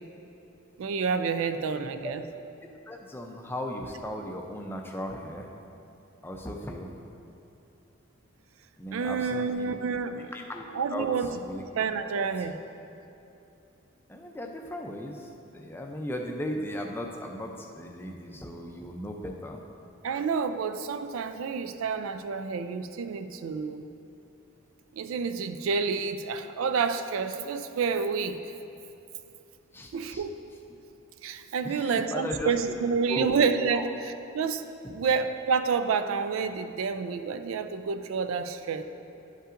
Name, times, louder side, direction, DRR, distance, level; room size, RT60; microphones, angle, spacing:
voice 1, 0.8-2.2 8.9-10.3 10.7-11.3 11.8-12.6 20.0-23.8 24.9-28.4 29.9-30.3 31.2-38.8, right 5 dB, 75° right, 9 dB, 0.3 m, -29 dB
voice 2, 2.9-5.5 6.2-6.9 8.8-9.7 10.3-10.7 10.9-11.6 12.2-12.3 14.1-19.6 29.7-30.2 31.6-32.7 33.1-33.3 33.7-33.9 34.8-35.1, left 1 dB, 10° left, 1 dB, 0.4 m, -37 dB
11.0 x 5.4 x 2.5 m, 2.8 s
head